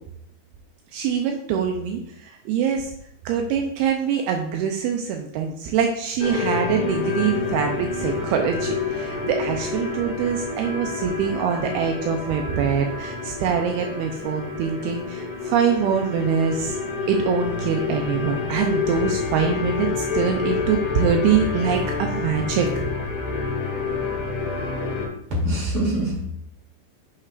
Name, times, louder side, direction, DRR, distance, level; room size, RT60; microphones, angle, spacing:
voice 1, 0.9-2.9 3.3-16.8 17.1-22.7, right 7 dB, 85° right, 3 dB, 2.3 m, -24 dB
sound 1, 6.2-25.1, left 4 dB, 40° left, 2.2 m, -28 dB
voice 2, 25.3-26.2, equal, 35° right, -4 dB, 3.1 m, -23 dB
8.7 x 6.6 x 2.5 m, 0.71 s
omnidirectional pair, 5.1 m